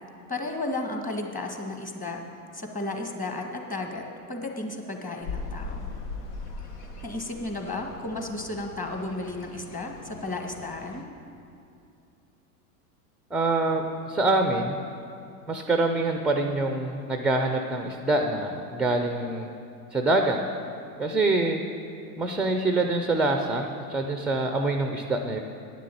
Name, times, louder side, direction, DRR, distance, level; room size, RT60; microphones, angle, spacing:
voice 1, 0.3-2.2 2.5-5.9 7.0-11.1, left 2 dB, 15° left, 2 dB, 1.7 m, -33 dB
sound 1, 5.2-11.0, left 3 dB, 90° left, 1.5 m, -40 dB
voice 2, 13.3-14.8 15.5-19.5 19.9-20.4 21.0-21.6 22.2-25.4, right 2 dB, ahead, 5 dB, 0.3 m, -25 dB
10.0 x 7.4 x 8.4 m, 2.6 s
hypercardioid pair, 100°, 46 cm